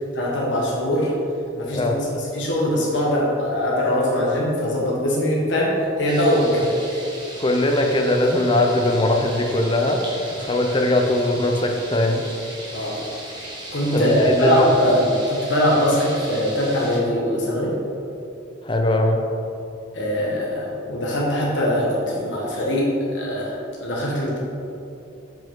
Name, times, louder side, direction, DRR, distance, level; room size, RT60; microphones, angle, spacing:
voice 1, 0.1-1.1 1.6-7.1 12.7-13.0 13.7-17.8 19.9-24.4, equal, 65° left, -4 dB, 1.1 m, -22 dB
voice 2, 1.7-2.1 7.4-10.0 10.4-12.3 13.9-14.7 18.6-19.2, left 1 dB, 25° left, 3 dB, 0.5 m, -20 dB
sound 1, 6.1-17.0, right 1 dB, 25° right, 1.2 m, -37 dB
7.4 x 5.1 x 3.7 m, 2.8 s
head